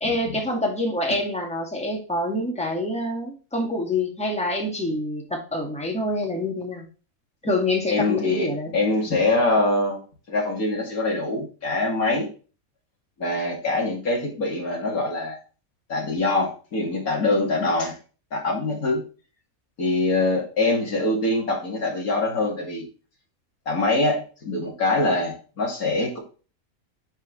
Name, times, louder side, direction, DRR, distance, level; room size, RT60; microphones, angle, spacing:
voice 1, 0.0-6.8 7.4-8.7, left 2 dB, 5° left, 0 dB, 2.1 m, -26 dB
voice 2, 7.9-10.0 10.3-12.3 13.2-15.4 15.9-17.9 18.3-19.0 19.8-22.8 23.7-26.2, left 2 dB, 85° left, -1 dB, 3.2 m, -24 dB
10.0 x 4.8 x 3.2 m, 0.36 s
omnidirectional pair, 1.5 m